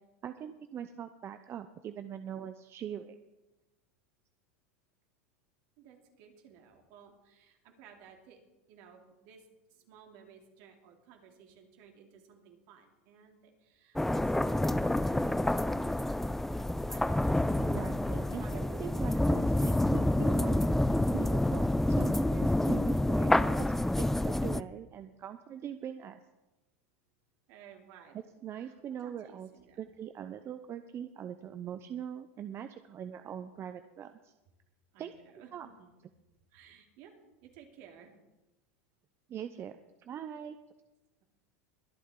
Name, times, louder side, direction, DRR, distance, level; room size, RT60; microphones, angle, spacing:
voice 1, 0.2-3.2 17.6-20.6 21.1-26.2 28.4-29.5 29.8-34.3 35.0-35.1 35.5-35.7 39.3-39.8 40.1-40.6, right 9 dB, 35° right, 10 dB, 0.6 m, -42 dB
voice 2, 5.8-8.4 8.7-16.2 16.8-17.7 18.2-19.4 27.5-28.2 28.5-29.9 34.9-35.9 36.5-37.1 37.4-38.1, right 7 dB, 60° right, 2 dB, 2.9 m, -56 dB
sound 1, 14.0-24.6, left 1 dB, 5° left, 0.3 m, -28 dB
22.5 x 8.5 x 3.8 m, 1.0 s
hypercardioid pair, 105°, 7 cm